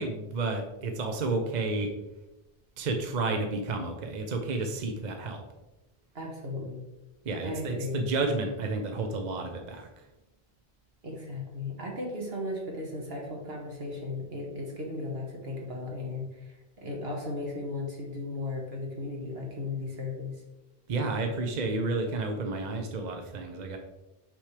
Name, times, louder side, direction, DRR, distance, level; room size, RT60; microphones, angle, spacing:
voice 1, 0.0-1.9 2.8-5.4 7.2-9.9 20.9-23.8, right 3 dB, 50° right, 4 dB, 0.7 m, -31 dB
voice 2, 6.1-6.8 7.4-8.1 11.0-20.4, left 2 dB, 75° right, -1 dB, 1.8 m, -36 dB
6.2 x 6.0 x 3.3 m, 1.0 s
omnidirectional pair, 1.0 m